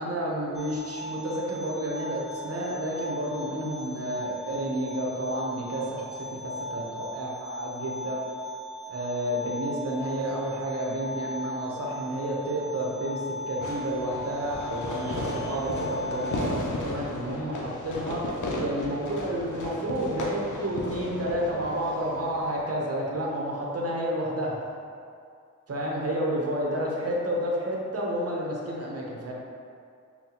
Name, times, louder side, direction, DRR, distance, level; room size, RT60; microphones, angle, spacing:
voice 1, 0.0-8.2 8.9-18.2 18.6-24.6 25.7-29.3, right 1 dB, 50° right, -3 dB, 0.8 m, -30 dB
sound 1, 0.5-16.4, left 1 dB, ahead, 0.3 m, -38 dB
Fireworks, 13.6-22.6, left 1 dB, 75° left, 0.6 m, -35 dB
5.5 x 2.2 x 2.9 m, 2.3 s
cardioid pair, 55°, 31 cm